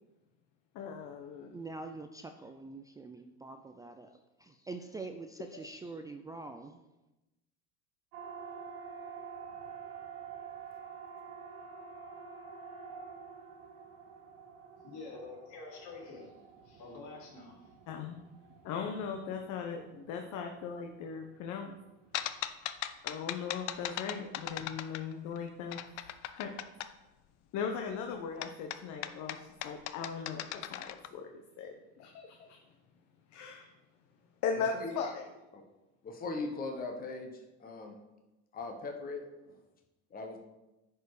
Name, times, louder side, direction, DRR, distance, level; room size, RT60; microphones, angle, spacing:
voice 1, 0.7-1.5 5.5-5.7 17.9-18.2 18.6-21.7 23.0-25.8 26.3-26.5 27.5-29.4 29.6-30.4 30.7-32.6 33.3-33.7 34.4-35.3, left 6 dB, 55° left, 1.0 m, -38 dB
voice 2, 1.5-4.1 4.4-6.8, right 3 dB, 10° right, 0.3 m, -44 dB
Siren, 8.1-22.4, right 6 dB, 70° right, 1.5 m, -49 dB
voice 3, 14.8-17.7, left 3 dB, 70° left, 3.0 m, -48 dB
sound 1, 22.1-25.4 25.7-26.9 28.4-31.1, left 13 dB, 85° left, 0.6 m, -38 dB
voice 4, 34.6-35.0 35.5-35.6 36.0-38.0 38.5-39.5 40.1-40.4, left 3 dB, 25° left, 1.2 m, -40 dB
10.0 x 4.7 x 4.9 m
supercardioid pair, 125°, 35 cm